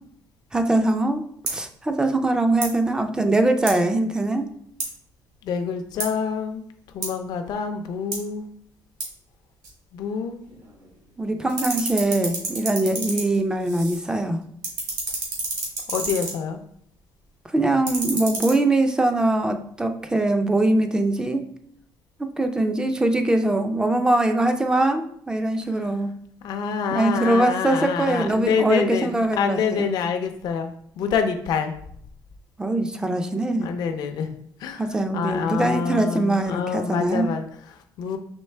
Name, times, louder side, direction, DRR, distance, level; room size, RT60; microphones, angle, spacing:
voice 1, 0.5-1.2 1.5-4.5 11.2-14.4 17.5-21.4 22.2-26.1 26.9-29.9 32.6-33.7 34.8-37.3, right 2 dB, 10° right, 6 dB, 0.3 m, -22 dB
sound 1, 1.5-1.6 2.5-2.8 3.7-3.8 4.8-4.9 6.0-6.1 7.0-7.2 8.1-8.2 9.0-9.1 9.6-9.7 10.5-11.2 11.4-14.1 14.4-16.4 17.7-18.5, right 2 dB, 65° right, 1.5 m, -30 dB
voice 2, 5.4-6.6 6.9-8.5 9.9-10.4 15.9-16.6 25.7-25.9 26.4-30.7 31.0-31.7 33.6-34.3 34.6-38.2, left 6 dB, 70° left, 5 dB, 0.5 m, -27 dB
4.4 x 3.1 x 3.2 m, 0.66 s
cardioid pair, 160°, 7 cm